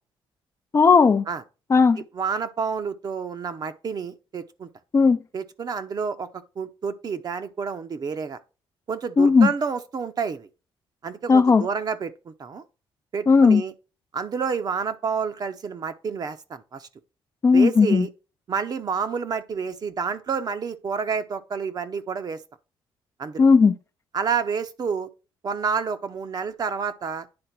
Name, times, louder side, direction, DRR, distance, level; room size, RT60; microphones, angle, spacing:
voice 1, 0.7-1.2 1.7-2.0 4.9-5.2 9.2-9.5 11.3-11.7 13.3-13.6 17.4-18.0 23.4-23.8, left 5 dB, 30° left, 0.5 m, -16 dB
voice 2, 2.1-4.7 5.3-6.3 6.6-8.4 8.9-10.5 11.0-12.6 13.1-13.7 14.1-16.9 17.5-18.1 18.5-22.4 23.2-23.4 24.1-25.1 25.4-27.3, right 6 dB, 45° right, 0.8 m, -29 dB
9.7 x 3.7 x 5.9 m
cardioid pair, 110°, 9 cm